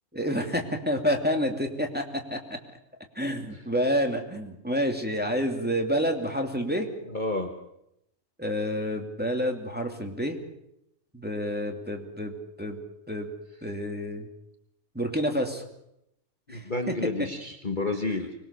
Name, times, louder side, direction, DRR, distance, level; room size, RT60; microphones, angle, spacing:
voice 1, 0.1-2.6 3.2-6.9 8.4-10.4 11.1-12.8 13.1-13.3 13.6-14.3 14.9-15.6 16.5-16.6, equal, 5° right, 3 dB, 2.6 m, -28 dB
voice 2, 7.1-7.5 16.5-18.3, left 2 dB, 35° left, 5 dB, 1.6 m, -30 dB
25.0 x 21.0 x 6.8 m, 0.80 s
omnidirectional pair, 1.5 m